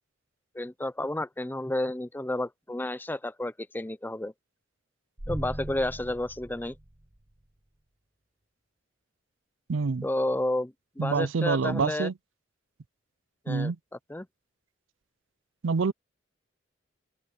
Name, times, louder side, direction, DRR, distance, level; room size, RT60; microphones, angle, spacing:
voice 1, 0.5-4.3 5.3-6.8 10.0-12.1 13.5-13.7 14.1-14.3, left 1 dB, 10° left, 0.6 m, -31 dB
sound 1, 5.2-7.4, right 1 dB, 30° right, 1.4 m, -39 dB
voice 2, 9.7-10.1 11.0-12.1 13.5-13.8 15.6-15.9, right 4 dB, 85° right, 0.5 m, -26 dB
head